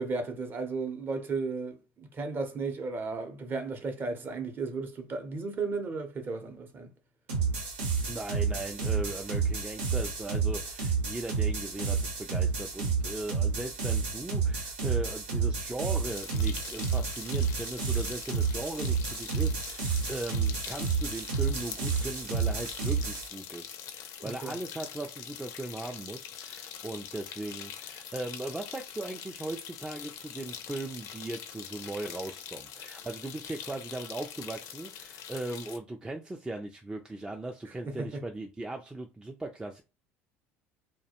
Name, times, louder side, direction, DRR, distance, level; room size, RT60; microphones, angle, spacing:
voice 1, 0.0-6.9 24.2-24.6 37.7-38.2, right 4 dB, 35° right, 0.7 m, -34 dB
sound 1, 7.3-23.3, right 5 dB, 90° right, 0.9 m, -30 dB
voice 2, 8.1-39.8, right 2 dB, 10° right, 0.3 m, -38 dB
sound 2, 16.1-35.8, left 9 dB, 65° left, 0.4 m, -44 dB
2.3 x 2.1 x 2.8 m
supercardioid pair, 90°, 6 cm